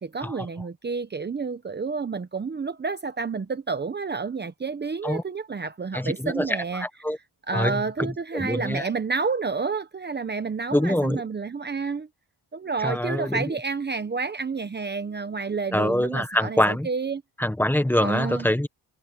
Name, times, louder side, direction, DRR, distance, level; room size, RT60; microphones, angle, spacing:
voice 1, 0.0-6.8 7.5-12.1 12.5-17.2 18.0-18.5, right 4 dB, 25° right, 1.0 m, -30 dB
voice 2, 5.9-7.2 7.5-8.9 10.7-11.2 12.8-13.6 15.7-16.9 17.4-18.7, left 1 dB, 5° left, 1.2 m, -25 dB
cardioid pair, 120°, 42 cm